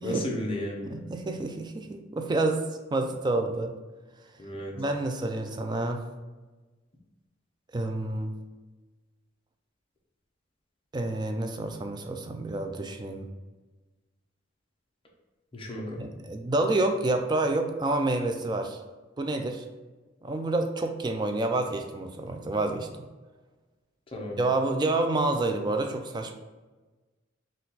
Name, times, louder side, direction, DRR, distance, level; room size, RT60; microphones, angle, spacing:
voice 1, 0.0-0.9 4.4-4.7 15.5-16.0 24.1-24.4, equal, 25° left, -1 dB, 0.7 m, -33 dB
voice 2, 0.9-3.7 4.8-6.0 7.7-8.3 10.9-13.3 16.0-18.8 19.2-19.6 20.2-22.9 24.4-26.3, right 2 dB, 20° right, 5 dB, 0.3 m, -28 dB
4.2 x 2.4 x 3.9 m, 1.2 s
head